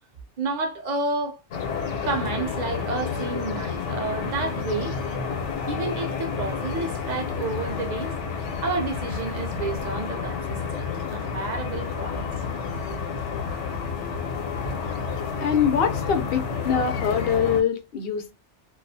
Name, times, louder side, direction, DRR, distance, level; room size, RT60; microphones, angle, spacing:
voice 1, 0.4-1.4 2.0-5.0 5.7-12.3 14.6-14.7, right 3 dB, 55° right, 0.5 m, -30 dB
sound 1, 1.5-17.6, left 5 dB, 80° left, 1.0 m, -30 dB
voice 2, 15.4-18.3, left 7 dB, 65° left, 0.7 m, -24 dB
2.4 x 2.3 x 2.6 m
omnidirectional pair, 1.2 m